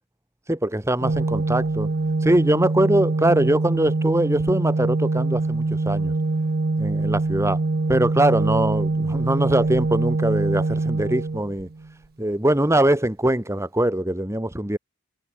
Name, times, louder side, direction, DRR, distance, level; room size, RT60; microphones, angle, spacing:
voice 1, 0.5-1.9 2.2-6.1 6.8-7.6 7.9-11.7 12.2-14.8, right 1 dB, 15° right, 1.2 m, -22 dB
Organ, 1.0-11.9, right 3 dB, 45° right, 0.6 m, -24 dB
head